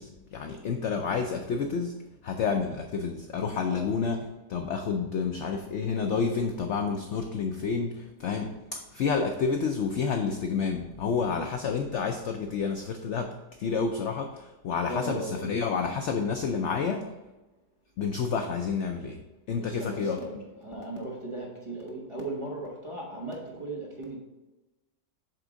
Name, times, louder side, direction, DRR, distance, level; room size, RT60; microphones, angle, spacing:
voice 1, 0.0-4.2 4.5-17.1 18.0-19.2 19.5-20.2, left 5 dB, 65° left, 5 dB, 0.7 m, -29 dB
voice 2, 14.8-15.5 19.5-24.2, right 1 dB, 20° right, -2 dB, 1.1 m, -37 dB
7.7 x 3.6 x 5.0 m, 1.1 s
omnidirectional pair, 1.7 m